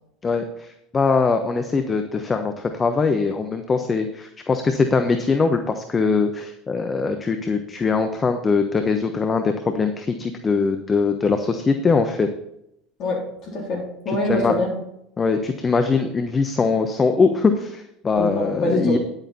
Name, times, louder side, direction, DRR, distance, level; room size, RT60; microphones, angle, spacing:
voice 1, 0.2-12.3 14.1-14.5 15.2-19.0, left 4 dB, 25° left, 7 dB, 1.0 m, -22 dB
voice 2, 13.0-14.7 18.2-19.0, left 1 dB, 45° left, -1 dB, 3.6 m, -24 dB
10.5 x 9.1 x 4.2 m, 0.79 s
figure-of-eight pair, 70°, 0 cm